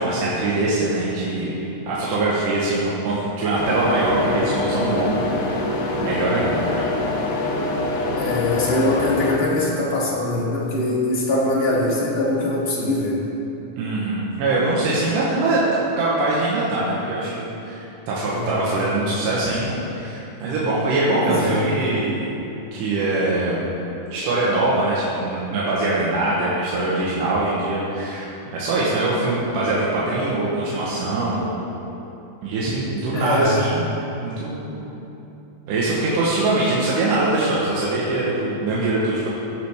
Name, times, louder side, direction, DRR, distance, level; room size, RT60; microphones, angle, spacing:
voice 1, 0.0-1.5 1.9-5.7 6.0-6.9 13.8-15.6 16.0-22.4 22.7-23.7 24.1-31.6 32.4-33.9 34.2-34.9 35.7-39.3, right 2 dB, 75° right, -7 dB, 2.7 m, -23 dB
sound 1, 3.5-9.4, left 2 dB, 70° left, 1.4 m, -25 dB
voice 2, 8.1-13.2 18.3-18.8 21.1-21.6 33.1-33.7, left 2 dB, 40° left, -6 dB, 0.8 m, -23 dB
15.5 x 7.5 x 3.5 m, 2.9 s
omnidirectional pair, 3.9 m